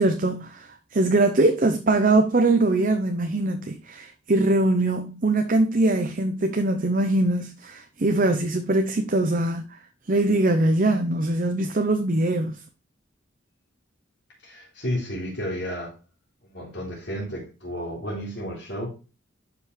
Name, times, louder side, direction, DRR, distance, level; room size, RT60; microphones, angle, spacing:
voice 1, 0.0-9.6 10.1-12.6, right 2 dB, 40° right, 0.7 m, -22 dB
voice 2, 14.4-15.9 16.4-18.9, equal, 60° left, 3.4 m, -32 dB
11.0 x 5.3 x 3.3 m
head